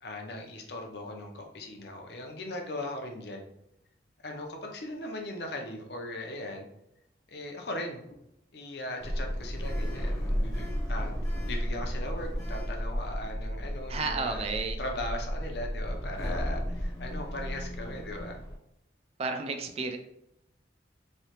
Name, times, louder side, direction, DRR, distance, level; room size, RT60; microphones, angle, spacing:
voice 1, 0.0-3.5 4.2-6.7 7.3-8.0 8.5-11.1 11.5-14.4 14.8-18.4, left 1 dB, 60° left, 2 dB, 0.6 m, -38 dB
Sliding door, 9.0-18.5, equal, 20° left, 0.7 m, -33 dB
voice 2, 13.9-14.8 19.2-20.0, right 4 dB, 35° right, 4 dB, 0.3 m, -32 dB
3.2 x 2.8 x 2.9 m, 0.82 s
head